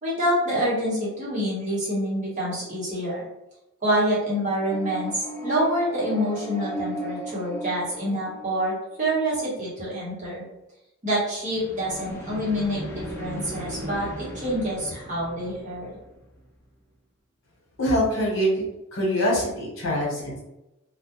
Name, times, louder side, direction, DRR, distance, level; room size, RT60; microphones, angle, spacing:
voice 1, 0.0-3.2 3.8-10.4 11.0-15.9, equal, 35° right, -6 dB, 1.0 m, -27 dB
sound 1, 4.5-8.9 11.4-16.4, right 1 dB, 10° left, 0.4 m, -36 dB
voice 2, 17.8-18.6 18.9-20.4, equal, 70° left, -4 dB, 1.0 m, -24 dB
2.2 x 2.1 x 2.8 m, 0.92 s
head